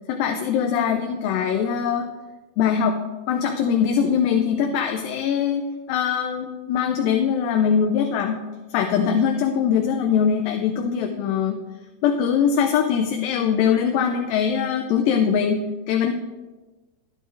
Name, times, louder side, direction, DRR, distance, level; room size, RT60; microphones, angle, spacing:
voice 1, 0.1-2.1 2.6-3.0 3.3-8.4 8.7-11.6 12.0-16.1, left 7 dB, 80° left, 4 dB, 2.2 m, -22 dB
12.0 x 10.5 x 2.5 m, 1.2 s
omnidirectional pair, 4.3 m